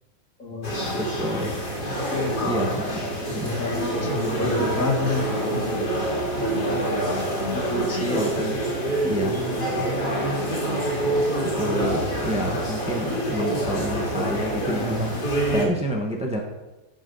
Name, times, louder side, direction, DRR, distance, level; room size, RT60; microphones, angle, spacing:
voice 1, 0.4-0.7 2.1-2.7 3.0-3.2 3.4-6.8 7.4-8.3 9.3-9.6, left 4 dB, 55° left, 0 dB, 2.3 m, -30 dB
sound 1, 0.6-15.6, right 1 dB, 90° left, 3.6 m, -26 dB
voice 2, 1.0-1.6 2.4-3.6 8.1-8.6 9.1-9.4 11.4-16.4, equal, 5° right, 1 dB, 1.2 m, -29 dB
14.5 x 6.3 x 5.5 m, 1.1 s
omnidirectional pair, 1.7 m